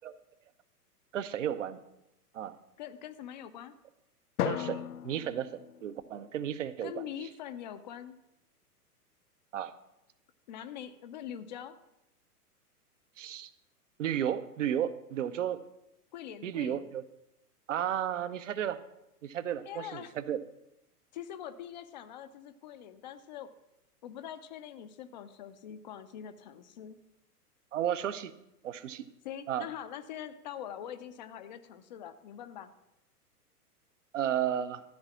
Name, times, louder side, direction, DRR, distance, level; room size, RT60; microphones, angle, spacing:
voice 1, 1.1-1.8 2.3-2.6 4.4-7.3 9.5-9.7 13.2-13.5 14.0-15.6 16.4-17.0 17.7-18.8 19.2-20.4 27.7-28.3 28.6-29.1 29.5-29.6 34.1-34.8, right 10 dB, 50° right, 13 dB, 0.8 m, -33 dB
voice 2, 2.8-3.8 6.8-8.2 10.5-11.7 16.1-16.9 19.6-20.1 21.1-23.5 24.0-27.0 29.2-32.7, left 10 dB, 30° left, 11 dB, 0.5 m, -43 dB
Drum, 4.4-6.7, left 10 dB, 75° left, 0.5 m, -37 dB
13.0 x 4.8 x 7.1 m, 0.88 s
figure-of-eight pair, 105°, 47 cm